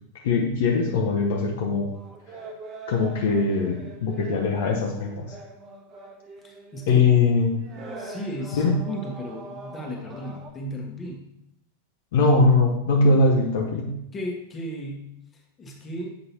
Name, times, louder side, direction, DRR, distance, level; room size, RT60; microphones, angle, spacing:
voice 1, 0.2-1.9 2.9-5.3 6.9-7.5 8.5-8.8 12.1-14.0, left 3 dB, 55° left, 1 dB, 0.9 m, -21 dB
sound 1, 1.9-7.3 7.6-10.5, right 2 dB, 30° right, 1.0 m, -42 dB
voice 2, 6.4-7.0 8.0-11.2 14.1-16.2, equal, 20° left, 1 dB, 1.3 m, -35 dB
7.9 x 5.4 x 2.9 m, 0.80 s
figure-of-eight pair, 90°, 0 cm